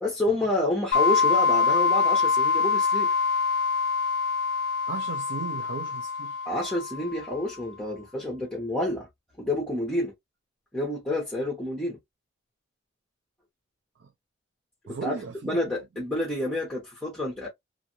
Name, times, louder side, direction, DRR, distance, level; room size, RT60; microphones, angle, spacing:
voice 1, 0.0-3.1 6.5-9.1 9.4-10.1 10.7-12.0 15.0-15.2 15.4-17.5, left 1 dB, 5° left, 0.8 m, -29 dB
sound 1, 0.9-7.4, left 5 dB, 60° left, 0.4 m, -25 dB
voice 2, 4.9-6.4 14.0-14.1 14.9-15.6, right 4 dB, 75° right, 0.4 m, -37 dB
2.5 x 2.4 x 2.7 m
head